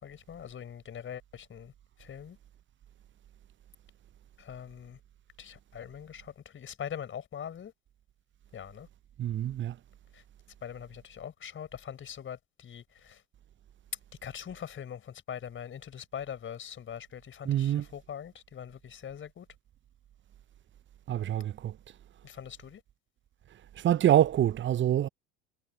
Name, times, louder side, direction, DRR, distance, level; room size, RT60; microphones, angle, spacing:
voice 1, 0.0-1.7 2.0-2.4 4.4-5.0 5.4-7.7 8.5-8.9 10.1-10.2 10.6-13.2 14.2-19.5 22.2-22.8, left 8 dB, 30° left, 5.0 m, -42 dB
voice 2, 9.2-9.8 17.4-17.9 21.1-21.8 23.7-25.1, right 11 dB, 30° right, 1.1 m, -26 dB
figure-of-eight pair, 70°, 39 cm